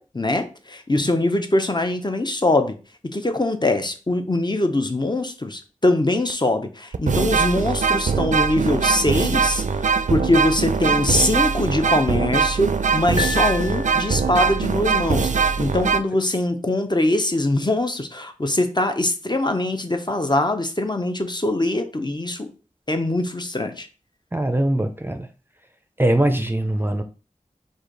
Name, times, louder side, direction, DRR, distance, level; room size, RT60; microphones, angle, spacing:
voice 1, 0.0-2.8 3.0-22.5 22.9-23.9, left 1 dB, 35° left, 6 dB, 0.7 m, -22 dB
sound 1, 6.3-6.4 6.9-16.0, right 5 dB, 65° right, 0.4 m, -21 dB
Piano, 13.2-14.5, left 5 dB, 70° left, 1.8 m, -31 dB
voice 2, 24.3-25.3 26.0-27.0, right 1 dB, 15° right, 7 dB, 0.5 m, -21 dB
4.9 x 2.7 x 3.9 m, 0.34 s
wide cardioid pair, 45°, 13 cm